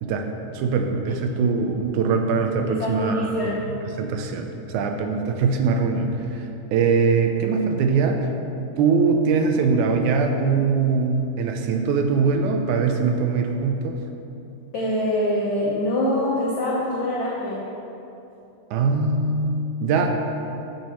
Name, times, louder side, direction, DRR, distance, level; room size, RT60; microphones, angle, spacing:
voice 1, 0.0-3.4 4.0-8.3 8.8-14.0 18.7-20.1, right 4 dB, 80° right, 4 dB, 2.2 m, -22 dB
voice 2, 2.7-3.6 14.7-17.7, left 1 dB, 55° left, -6 dB, 1.5 m, -24 dB
15.0 x 7.4 x 3.1 m, 2.8 s
omnidirectional pair, 3.5 m